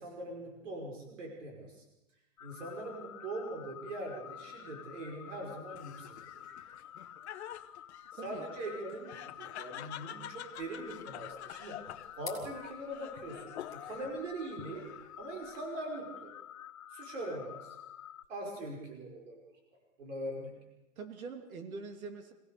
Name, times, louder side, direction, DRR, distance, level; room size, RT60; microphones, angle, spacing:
voice 1, 0.0-1.8 2.4-6.6 8.2-9.1 9.4-11.8 12.2-14.9 15.2-16.3 16.9-17.8 18.3-19.4 20.0-20.5, right 1 dB, 60° right, 1 dB, 5.4 m, -42 dB
sound 1, 2.4-18.2, left 10 dB, 85° left, 1.9 m, -50 dB
Laughter, 5.7-14.2 14.6-15.3, left 11 dB, 50° left, 1.3 m, -48 dB
sound 2, 10.5-15.6, left 8 dB, 10° left, 2.7 m, -54 dB
voice 2, 21.0-22.3, right 4 dB, 85° right, 7 dB, 2.7 m, -44 dB
26.5 x 17.0 x 6.7 m, 0.96 s
supercardioid pair, 180°, 41 cm